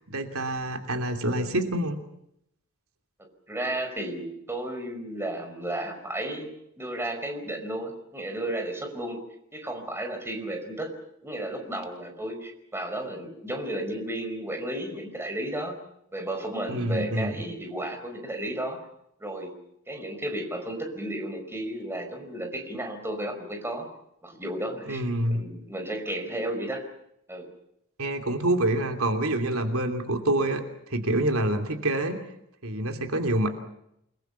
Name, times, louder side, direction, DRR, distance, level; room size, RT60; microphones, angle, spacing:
voice 1, 0.0-2.0 16.7-17.4 24.8-25.4 28.0-32.2 32.6-33.5, right 1 dB, 85° right, 5 dB, 2.9 m, -27 dB
voice 2, 3.5-6.5 6.8-9.2 9.5-10.9 11.2-15.8 16.1-18.8 19.2-19.5 19.9-23.9 24.2-25.0 25.3-26.8 27.3-27.5, right 1 dB, 10° right, 5 dB, 5.0 m, -33 dB
29.0 x 21.0 x 7.1 m, 0.78 s
head